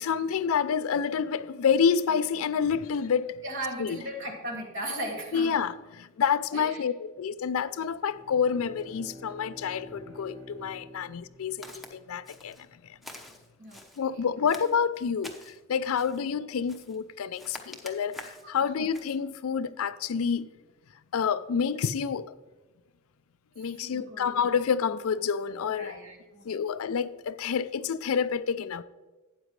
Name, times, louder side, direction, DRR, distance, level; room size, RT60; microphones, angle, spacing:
voice 1, 0.0-3.4 3.8-4.0 5.3-12.6 14.0-20.5 21.1-22.3 23.6-25.9 26.5-28.8, left 6 dB, 70° left, 0.4 m, -28 dB
voice 2, 3.4-5.5 6.5-6.8 13.6-14.1 18.6-18.7 23.8-24.3 25.8-26.5, right 1 dB, 55° right, 2.3 m, -37 dB
Bowed string instrument, 7.9-12.5, left 1 dB, 30° right, 2.3 m, -49 dB
Walk footsteps, 11.6-11.9 12.3-12.7 13.0-14.0 14.5-15.6 16.0-16.3 16.7-17.0 17.3-18.5 18.9-19.2, left 1 dB, ahead, 0.9 m, -46 dB
12.5 x 8.9 x 3.2 m
head